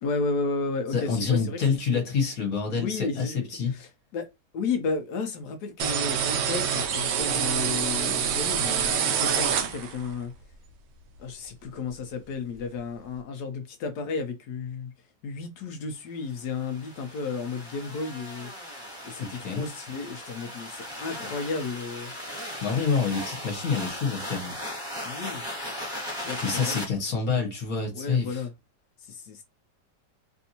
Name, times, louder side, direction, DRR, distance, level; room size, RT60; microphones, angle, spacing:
voice 1, 0.0-2.0 2.7-3.5 3.7-4.3 4.5-10.3 11.2-14.9 15.2-18.5 19.0-22.1 25.0-25.4 26.3-26.9 27.9-28.5 29.0-29.4, left 4 dB, 70° left, 1.0 m, -33 dB
voice 2, 0.9-3.7 19.2-19.6 22.6-24.6 26.4-28.4, left 5 dB, 55° left, 1.5 m, -27 dB
sound 1, 5.8-10.1, right 7 dB, 75° right, 1.2 m, -26 dB
sound 2, 16.4-26.8, left 1 dB, 5° right, 1.1 m, -37 dB
3.4 x 2.5 x 2.7 m
omnidirectional pair, 2.0 m